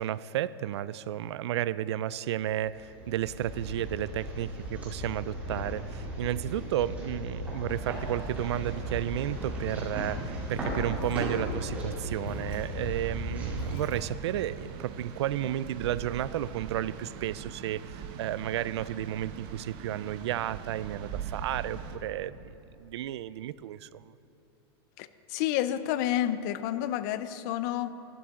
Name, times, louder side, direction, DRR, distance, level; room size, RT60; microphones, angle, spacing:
voice 1, 0.0-22.5 22.8-24.0, right 12 dB, 85° right, 17 dB, 0.4 m, -32 dB
sound 1, 2.6-14.7, equal, 10° right, 3.0 m, -37 dB
sound 2, 7.7-22.0, right 7 dB, 35° right, 0.8 m, -42 dB
sound 3, 11.0-11.9 12.3-14.6, left 1 dB, 65° left, 2.3 m, -45 dB
voice 2, 25.0-27.9, left 12 dB, 45° left, 13 dB, 0.5 m, -30 dB
12.5 x 12.0 x 3.7 m, 3.0 s
supercardioid pair, 155°, 14 cm